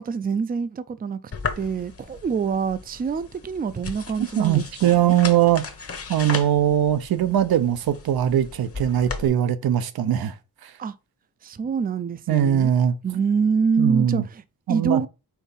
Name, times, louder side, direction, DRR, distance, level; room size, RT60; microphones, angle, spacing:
voice 1, 0.0-5.1 10.8-10.9 11.4-12.7 13.0-14.4 14.7-15.1, right 5 dB, 25° right, 0.4 m, -26 dB
sound 1, 1.3-9.3, left 5 dB, 40° left, 1.0 m, -36 dB
voice 2, 4.4-5.6 6.1-10.3 10.6-10.7 12.3-12.9 13.8-14.2 14.7-15.0, right 11 dB, 80° right, 0.8 m, -21 dB
4.6 x 3.9 x 5.4 m
wide cardioid pair, 120°, 36 cm